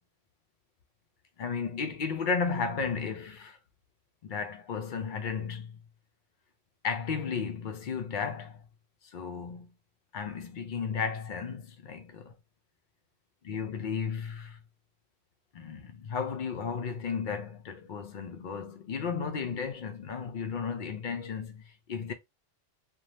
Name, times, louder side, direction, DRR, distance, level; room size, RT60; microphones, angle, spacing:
voice 1, 1.4-3.6 4.2-5.8 6.8-8.6 9.1-9.7 10.1-12.3 13.4-14.6 15.5-22.1, left 5 dB, 60° left, 0.5 m, -34 dB
2.6 x 2.2 x 3.1 m
omnidirectional pair, 1.3 m